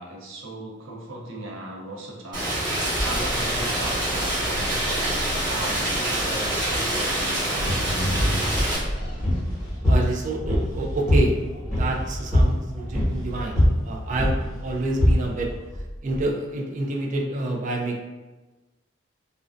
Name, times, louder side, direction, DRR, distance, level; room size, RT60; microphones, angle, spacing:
voice 1, 0.0-2.6 3.0-8.7, right 1 dB, 85° right, -2 dB, 0.6 m, -37 dB
Rain, 2.3-8.8, right 1 dB, 20° right, 0.8 m, -26 dB
sound 1, 2.7-10.1, equal, 25° left, 0.5 m, -38 dB
sound 2, 7.6-16.2, equal, 5° left, 1.0 m, -24 dB
voice 2, 9.9-11.4 11.7-14.4 14.6-15.5 16.0-18.0, right 2 dB, 40° right, 0 dB, 0.3 m, -28 dB
2.5 x 2.1 x 2.3 m, 1.2 s
head